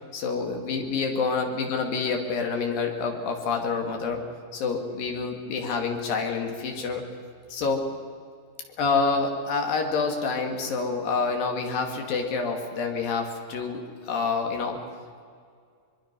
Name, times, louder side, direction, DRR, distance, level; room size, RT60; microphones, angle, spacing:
voice 1, 0.1-4.2 4.5-7.0 7.5-7.8 8.8-14.8, left 4 dB, 90° left, 3 dB, 4.1 m, -27 dB
23.5 x 23.0 x 6.1 m, 2.2 s
omnidirectional pair, 3.9 m